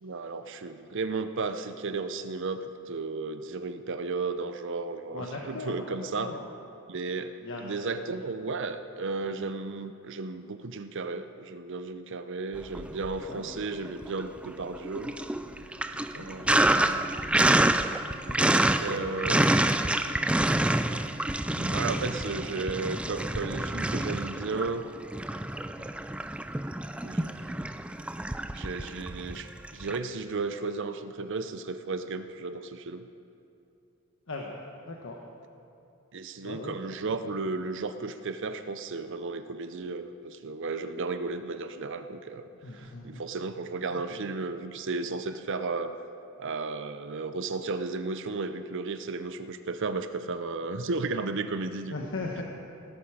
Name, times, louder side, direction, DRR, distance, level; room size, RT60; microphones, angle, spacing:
voice 1, 0.0-6.3 6.9-7.3 7.6-15.1 16.1-17.0 18.5-19.4 21.5-24.9 25.8-25.9 27.0-27.7 28.5-33.1 36.1-45.9 46.4-51.9, right 3 dB, 60° right, 10 dB, 0.6 m, -34 dB
voice 2, 5.1-6.5 7.4-8.2 9.3-9.4 13.2-13.4 15.9-16.3 34.3-35.2 36.4-36.8 37.0-37.3 42.6-43.2 43.9-44.3 51.9-52.4, left 2 dB, 65° left, 0 dB, 1.2 m, -40 dB
Sink (filling or washing), 12.6-13.5 13.9-30.0, right 1 dB, 5° right, 0.3 m, -27 dB
17.5 x 13.0 x 4.9 m, 2.7 s
head